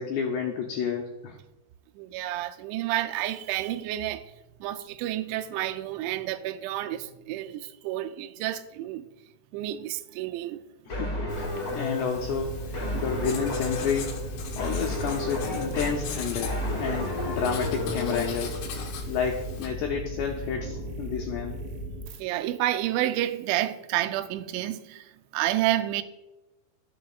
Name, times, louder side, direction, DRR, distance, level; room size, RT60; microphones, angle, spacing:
voice 1, 0.0-1.4 10.9-14.2 14.6-16.5 16.8-18.6 19.1-21.6, left 7 dB, 90° left, 2.4 m, -30 dB
voice 2, 2.0-4.3 4.6-9.1 9.5-10.6 11.5-11.6 22.2-26.0, right 14 dB, 90° right, 2.6 m, -30 dB
sound 1, 10.9-18.2, left 1 dB, 45° left, 1.4 m, -32 dB
Writing, 11.3-19.7, left 6 dB, 75° left, 2.6 m, -40 dB
sound 2, 12.2-22.2, right 1 dB, 70° right, 2.9 m, -37 dB
16.5 x 7.0 x 2.4 m
omnidirectional pair, 5.9 m